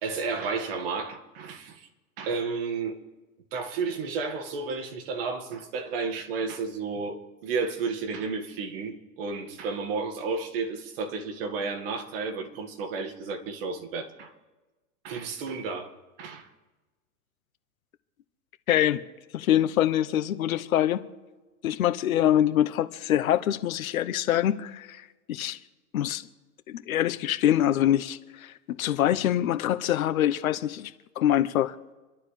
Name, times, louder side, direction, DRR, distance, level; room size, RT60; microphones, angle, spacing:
voice 1, 0.0-1.9 2.2-3.0 3.5-14.3 15.0-16.5, right 4 dB, 40° right, 1.8 m, -32 dB
voice 2, 18.7-19.0 19.3-21.0 21.6-25.6 25.9-26.3 26.7-31.7, left 11 dB, 65° left, 1.0 m, -25 dB
28.0 x 12.0 x 3.3 m
supercardioid pair, 165°, 46 cm